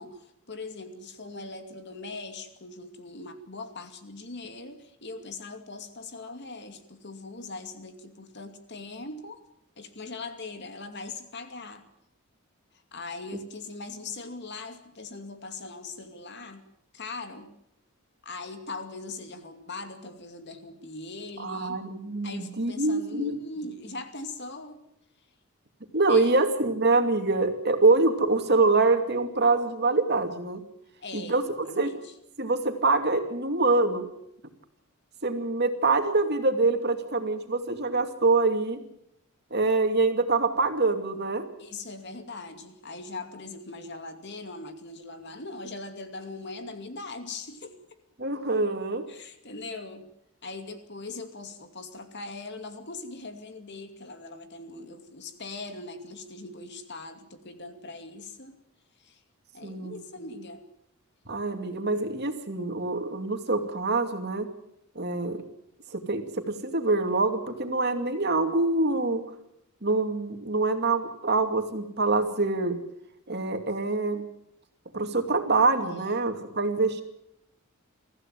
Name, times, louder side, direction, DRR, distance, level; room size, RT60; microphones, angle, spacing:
voice 1, 0.0-9.4 9.8-11.9 12.9-16.7 16.9-17.5 18.2-21.8 22.2-24.8 26.1-26.4 31.0-32.1 41.6-47.8 49.1-50.1 50.4-58.6 59.0-59.2 59.5-60.6 75.8-76.6, left 3 dB, 50° left, 7 dB, 2.5 m, -40 dB
voice 2, 21.4-23.4 25.9-30.6 31.1-31.4 31.8-31.9 32.4-34.1 35.2-38.8 39.5-41.5 48.2-49.0 59.6-59.9 61.3-64.5 64.9-65.4 65.9-69.2 69.8-72.8 73.3-74.2 74.9-77.0, right 3 dB, 50° right, 6 dB, 2.6 m, -25 dB
23.5 x 15.0 x 9.2 m, 0.78 s
head